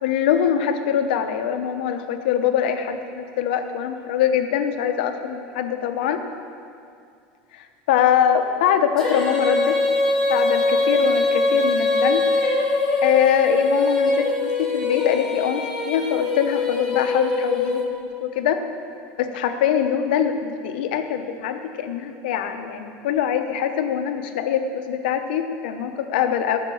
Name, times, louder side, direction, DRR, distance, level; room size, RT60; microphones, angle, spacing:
voice 1, 0.0-6.2 7.5-9.8 10.3-12.7 13.0-18.6 19.2-26.6, left 9 dB, 85° left, 7 dB, 0.9 m, -23 dB
Female singing, 9.0-18.1, left 2 dB, 10° left, 2.1 m, -22 dB
14.0 x 5.9 x 6.3 m, 2.4 s
supercardioid pair, 160°, 5 cm